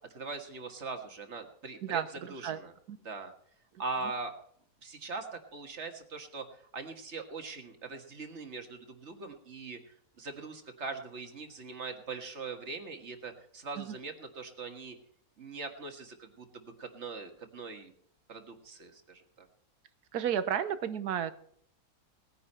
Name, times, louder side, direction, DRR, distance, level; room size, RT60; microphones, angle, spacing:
voice 1, 0.1-2.7 3.0-3.3 3.8-4.4 4.8-15.0 15.4-17.9 18.3-19.5, right 4 dB, 45° right, 6 dB, 1.9 m, -41 dB
voice 2, 1.8-2.6 2.9-3.0 13.8-14.0 20.1-21.3, right 9 dB, 75° right, 12 dB, 1.4 m, -32 dB
19.0 x 9.9 x 4.3 m, 0.65 s
omnidirectional pair, 1.7 m